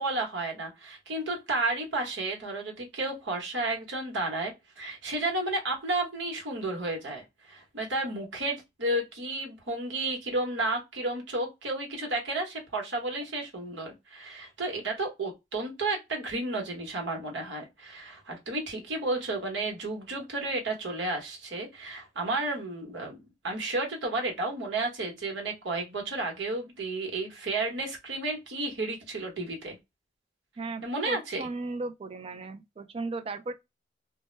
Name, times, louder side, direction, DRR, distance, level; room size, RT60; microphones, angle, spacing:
voice 1, 0.0-7.2 7.5-23.2 23.4-29.8 30.8-31.5, right 2 dB, 90° right, 1.0 m, -32 dB
voice 2, 30.6-33.5, right 3 dB, 30° right, 0.3 m, -36 dB
2.2 x 2.0 x 3.0 m
head